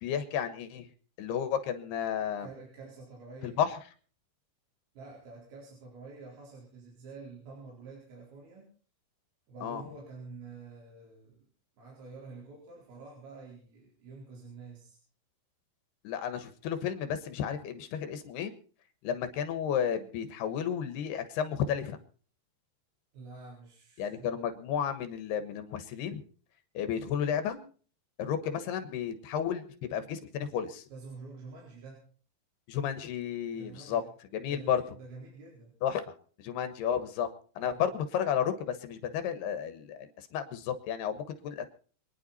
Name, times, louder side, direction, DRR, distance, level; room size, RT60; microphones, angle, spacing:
voice 1, 0.0-0.9 1.2-2.5 3.4-3.8 9.6-9.8 16.0-18.5 19.0-22.0 24.0-26.2 26.7-27.6 28.2-29.6 29.9-30.8 32.7-34.0 34.3-34.8 35.8-36.1 36.4-37.3 37.6-41.7, left 8 dB, 80° left, 9 dB, 3.4 m, -32 dB
voice 2, 2.4-3.6 4.9-8.7 9.5-11.4 11.8-15.0 23.1-24.4 30.9-32.1 33.5-34.1 34.5-35.7 37.6-37.9, right 4 dB, 70° right, -3 dB, 6.2 m, -48 dB
26.0 x 10.0 x 4.2 m, 0.43 s
omnidirectional pair, 4.6 m